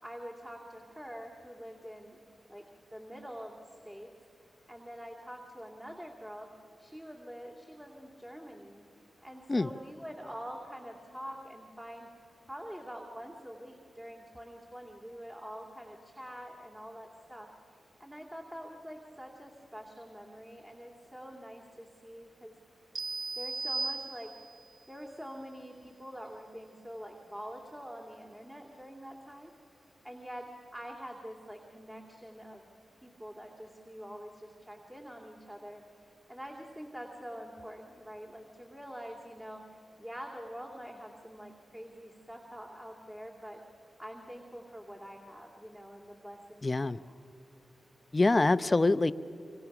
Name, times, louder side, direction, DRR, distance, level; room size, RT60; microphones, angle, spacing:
voice 1, 0.0-2.2 2.5-3.6 3.8-4.1 4.7-6.5 6.8-8.9 9.2-12.1 12.5-17.5 18.0-22.5 23.4-24.3 24.9-29.5 30.0-32.6 33.0-35.8 36.3-43.6 44.0-47.1, equal, 10° right, 1 dB, 2.6 m, -46 dB
sound 1, 23.0-24.7, right 3 dB, 60° right, 0.6 m, -36 dB
voice 2, 46.6-47.0 48.1-49.1, left 2 dB, 35° left, 14 dB, 0.7 m, -25 dB
25.5 x 25.0 x 6.1 m, 2.6 s
cardioid pair, 50°, 0 cm